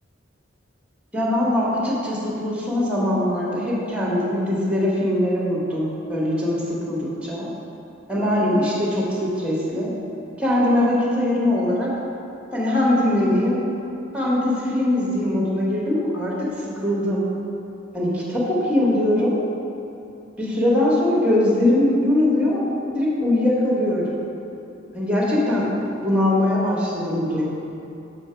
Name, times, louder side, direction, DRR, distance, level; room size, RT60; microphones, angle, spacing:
voice 1, 1.1-7.5 8.1-9.9 10.4-11.9 12.5-13.6 14.1-16.3 16.8-17.2 17.9-19.3 20.4-22.6 22.9-24.1 24.9-25.6 26.0-27.5, left 1 dB, 5° right, -5 dB, 1.3 m, -21 dB
5.9 x 4.4 x 5.6 m, 2.8 s
head